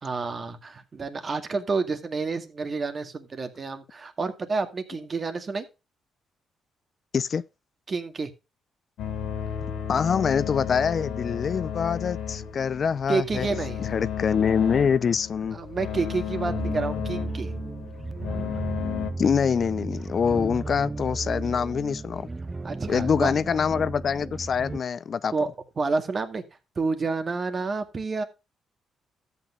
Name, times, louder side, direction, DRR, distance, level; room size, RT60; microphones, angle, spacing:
voice 1, 0.0-5.7 7.9-8.3 13.1-13.8 15.5-17.5 22.6-23.6 25.3-25.5 25.8-26.4 26.8-28.2, right 4 dB, 40° right, 2.1 m, -29 dB
sound 1, 9.0-19.1, left 8 dB, 85° left, 2.2 m, -33 dB
voice 2, 9.6-13.5 13.9-15.6 19.2-22.3 22.9-25.3, left 6 dB, 55° left, 0.6 m, -25 dB
sound 2, 16.4-24.8, right 3 dB, 25° right, 0.4 m, -34 dB
13.5 x 8.8 x 2.4 m
cardioid pair, 75°, 0 cm